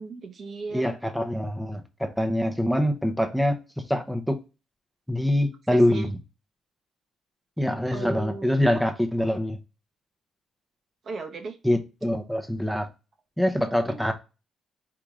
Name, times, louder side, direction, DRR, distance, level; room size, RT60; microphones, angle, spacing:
voice 1, 0.0-1.0 5.7-6.1 7.9-8.6 11.0-11.6 13.9-14.0, right 3 dB, 50° right, 1.0 m, -36 dB
voice 2, 0.7-3.6 3.9-4.4 5.1-6.2 7.6-9.6 11.6-12.9 13.4-14.1, left 1 dB, ahead, 0.8 m, -24 dB
4.8 x 2.9 x 3.7 m
cardioid pair, 90°, 0 cm